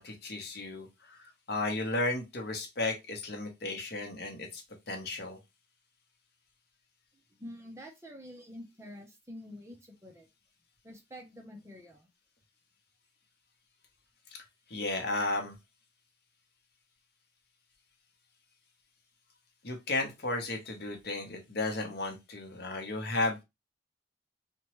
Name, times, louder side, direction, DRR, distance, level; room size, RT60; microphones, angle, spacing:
voice 1, 0.0-4.6 4.9-5.4 14.7-15.5 19.6-23.4, left 2 dB, 55° left, 0.7 m, -34 dB
voice 2, 7.4-10.3 10.8-12.1, equal, 15° right, 0.5 m, -47 dB
2.9 x 2.2 x 2.9 m
head